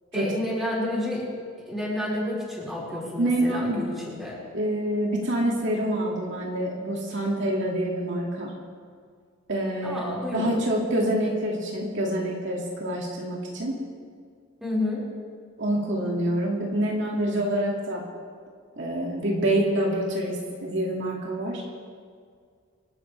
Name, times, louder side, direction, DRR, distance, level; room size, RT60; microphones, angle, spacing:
voice 1, 0.1-1.3 1.7-4.4 9.8-10.6 14.6-15.0, left 1 dB, ahead, -7 dB, 5.1 m, -30 dB
voice 2, 3.2-3.9 4.5-8.5 9.5-13.8 15.6-18.0 18.8-21.6, right 1 dB, 60° right, -2 dB, 2.3 m, -26 dB
27.0 x 12.5 x 3.4 m, 2.1 s
head